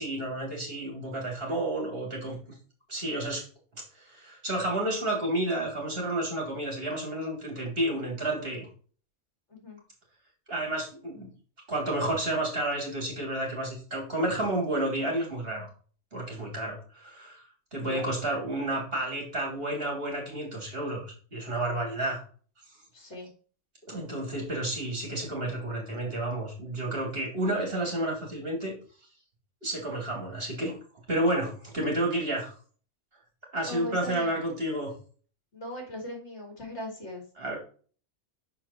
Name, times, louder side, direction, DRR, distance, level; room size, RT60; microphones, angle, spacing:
voice 1, 0.0-2.4 2.9-3.4 3.9-8.7 10.5-11.3 11.7-15.7 16.1-17.4 17.7-22.2 23.9-28.7 29.6-30.8 31.1-32.5 33.5-34.9 37.4-37.6, right 1 dB, 50° right, -1 dB, 3.8 m, -31 dB
voice 2, 22.9-23.3 33.7-34.3 35.5-37.2, left 1 dB, 65° left, 3 dB, 2.8 m, -39 dB
6.8 x 5.9 x 4.3 m, 0.41 s
omnidirectional pair, 1.2 m